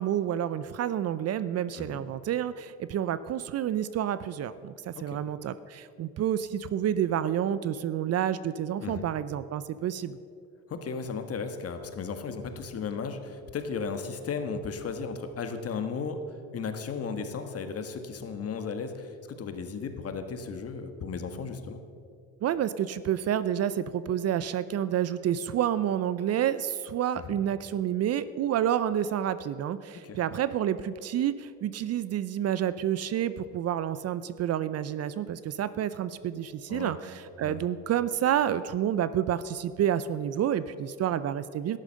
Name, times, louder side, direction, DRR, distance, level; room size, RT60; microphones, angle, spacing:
voice 1, 0.0-10.2 22.4-41.8, right 10 dB, 45° right, 15 dB, 0.6 m, -29 dB
voice 2, 10.7-16.2 16.5-21.8 27.2-27.4 30.0-30.2 36.7-36.9 37.4-37.6, left 5 dB, 40° left, 7 dB, 1.6 m, -35 dB
12.5 x 10.5 x 6.4 m, 2.4 s
supercardioid pair, 80°, 36 cm